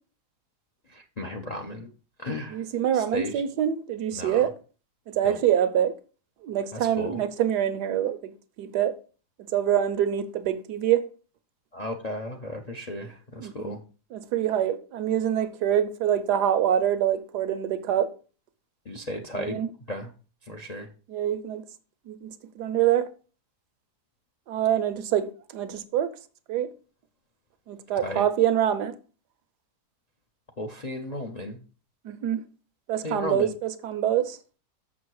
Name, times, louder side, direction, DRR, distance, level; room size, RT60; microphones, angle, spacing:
voice 1, 0.9-1.9 2.2-2.6 2.9-3.3 4.1-4.5 5.2-5.4 6.7-7.2 11.7-13.8 18.9-19.6 19.9-20.1 20.5-20.9 28.0-28.2 30.6-31.6 33.0-33.5, left 1 dB, 45° left, 0.5 m, -34 dB
voice 2, 2.5-4.5 5.1-5.9 6.4-8.3 8.6-8.9 9.5-11.0 13.4-13.7 14.1-18.1 19.3-19.7 21.1-21.6 22.1-23.1 24.5-26.1 26.5-26.7 27.7-28.9 32.0-32.4 32.9-34.4, right 10 dB, 80° right, 1.3 m, -25 dB
6.6 x 6.1 x 4.6 m
omnidirectional pair, 1.7 m